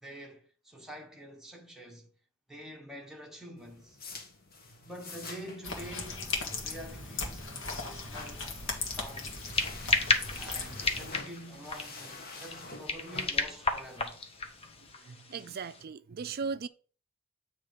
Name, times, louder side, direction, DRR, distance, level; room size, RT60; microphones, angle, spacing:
voice 1, 0.0-2.1 2.5-4.0 4.8-7.5 7.8-9.4 10.4-14.2, equal, ahead, 1.2 m, -47 dB
sound 1, 3.6-14.9, left 3 dB, 45° left, 1.5 m, -48 dB
sound 2, 5.6-11.1, left 3 dB, 65° left, 1.5 m, -38 dB
sound 3, 8.2-15.8, left 3 dB, 30° left, 0.7 m, -34 dB
voice 2, 15.0-16.7, right 5 dB, 50° right, 0.4 m, -37 dB
8.4 x 3.2 x 5.1 m
head